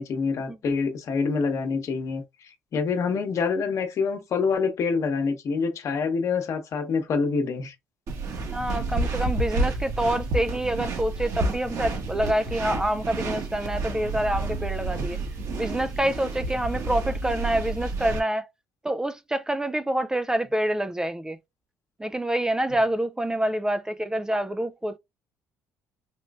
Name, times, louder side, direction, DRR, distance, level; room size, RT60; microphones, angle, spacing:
voice 1, 0.0-7.7, left 5 dB, 55° left, 1.0 m, -26 dB
sound 1, 8.1-18.2, right 2 dB, 60° right, 1.5 m, -30 dB
voice 2, 8.5-15.2 15.6-18.5 18.8-21.4 22.0-25.0, right 1 dB, 10° right, 0.3 m, -27 dB
4.3 x 3.0 x 2.4 m
cardioid pair, 95°, 6 cm